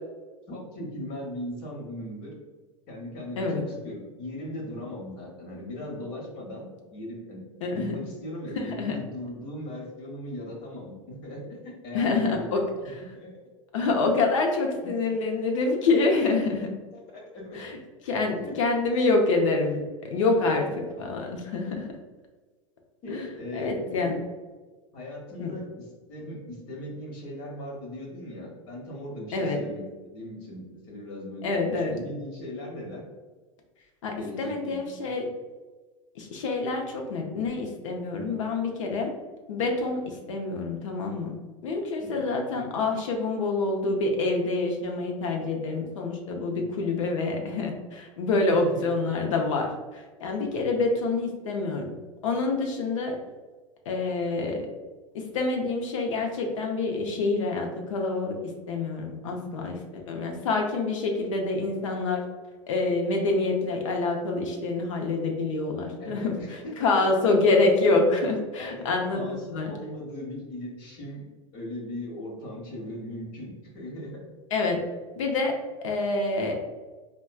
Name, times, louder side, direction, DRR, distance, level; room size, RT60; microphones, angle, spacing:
voice 1, 0.5-2.3 2.9-6.7 6.9-7.4 7.7-11.6 11.8-12.5 12.8-13.3 16.9-17.6 18.0-18.2 18.4-18.6 20.3-20.6 23.0-24.2 24.9-29.8 30.1-31.6 31.9-33.0 34.2-35.1 38.3-38.4 42.0-42.2 46.5-46.7 48.5-48.9 66.0-67.1 68.6-71.2 71.5-74.2, left 1 dB, 50° left, -1 dB, 1.1 m, -38 dB
voice 2, 7.6-7.9 8.6-9.0 11.9-12.6 13.7-16.7 17.5-17.8 18.1-20.7 21.0-21.9 23.1-23.3 23.5-24.1 25.4-25.5 29.3-29.6 31.4-32.0 34.0-35.3 36.2-39.1 39.5-41.4 41.6-51.9 52.2-53.2 53.9-54.7 55.1-62.2 62.7-69.7 74.5-74.8 75.1-76.5, left 3 dB, 70° left, 2 dB, 0.6 m, -27 dB
4.2 x 2.2 x 2.3 m, 1.3 s
hypercardioid pair, 90°, 17 cm